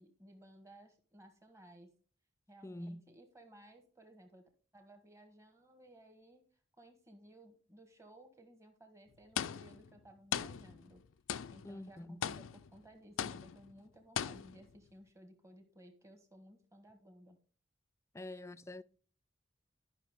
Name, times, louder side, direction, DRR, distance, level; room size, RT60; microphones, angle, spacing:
voice 1, 0.0-1.9 2.5-4.4 4.7-6.4 6.8-11.0 11.5-17.4, right 1 dB, 15° right, 1.5 m, -58 dB
voice 2, 2.6-3.0 11.6-12.3 18.1-18.8, left 1 dB, 15° left, 0.3 m, -46 dB
sound 1, 9.4-10.0 10.3-11.0 11.3-11.8 12.2-12.8 13.2-13.7 14.2-14.8, left 8 dB, 90° left, 0.4 m, -39 dB
12.0 x 5.9 x 3.6 m
head